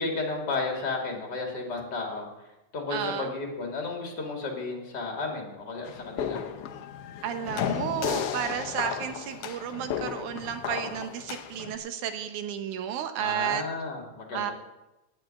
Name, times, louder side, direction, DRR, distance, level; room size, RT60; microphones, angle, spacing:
voice 1, 0.0-2.3 2.7-6.4 13.2-14.5, left 3 dB, 35° left, 1 dB, 2.8 m, -33 dB
voice 2, 2.9-3.3 7.2-13.6 14.3-14.5, right 9 dB, 85° right, 8 dB, 2.5 m, -32 dB
sound 1, 5.9-11.7, left 9 dB, 70° left, 1.5 m, -34 dB
9.2 x 8.9 x 9.0 m, 0.99 s
omnidirectional pair, 3.4 m